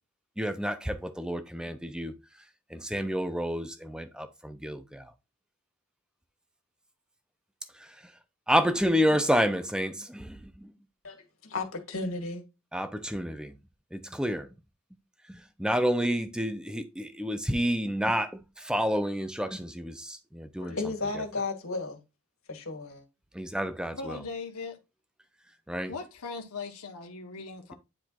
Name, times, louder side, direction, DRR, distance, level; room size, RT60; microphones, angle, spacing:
voice 1, 0.4-2.2 2.7-5.1 7.8-8.0 8.5-10.7 12.7-13.5 13.9-14.5 15.3-20.8 23.3-24.2 25.7-25.9, equal, 5° right, 0.6 m, -29 dB
voice 2, 11.0-12.4 20.6-22.0 22.5-23.0, left 3 dB, 70° left, 2.0 m, -34 dB
voice 3, 23.9-24.8 25.9-27.7, left 4 dB, 90° left, 1.2 m, -39 dB
10.0 x 4.5 x 2.4 m
head